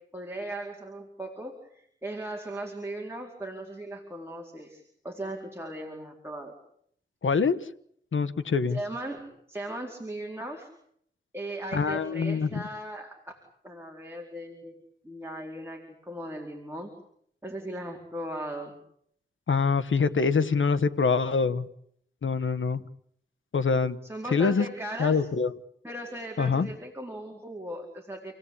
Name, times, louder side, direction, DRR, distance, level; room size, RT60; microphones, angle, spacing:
voice 1, 0.1-6.5 8.7-10.7 11.3-13.4 13.6-14.8 15.0-16.9 17.4-18.7 24.0-25.2 25.8-28.3, right 1 dB, 10° right, 0 dB, 4.5 m, -38 dB
voice 2, 7.2-7.7 8.1-8.8 11.7-12.6 19.5-21.7 22.2-22.8 23.5-24.0 24.3-24.6 25.0-25.5 26.4-26.7, left 5 dB, 90° left, 12 dB, 1.3 m, -25 dB
29.5 x 18.0 x 8.6 m, 0.69 s
wide cardioid pair, 95°, 20 cm